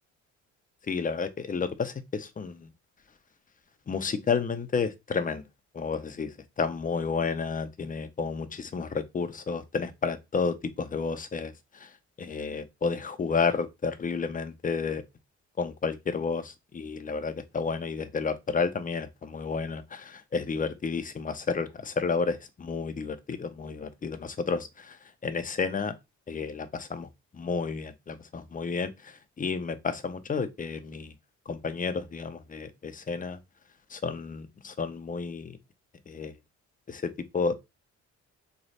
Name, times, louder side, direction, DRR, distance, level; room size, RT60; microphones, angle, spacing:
voice 1, 0.9-2.7 3.9-5.4 5.7-11.9 12.2-15.0 15.6-25.9 26.3-31.1 31.5-33.4 33.9-35.6 36.1-36.3 36.9-37.5, left 5 dB, 25° left, 0.7 m, -31 dB
3.2 x 2.4 x 4.1 m
supercardioid pair, 70°, 31 cm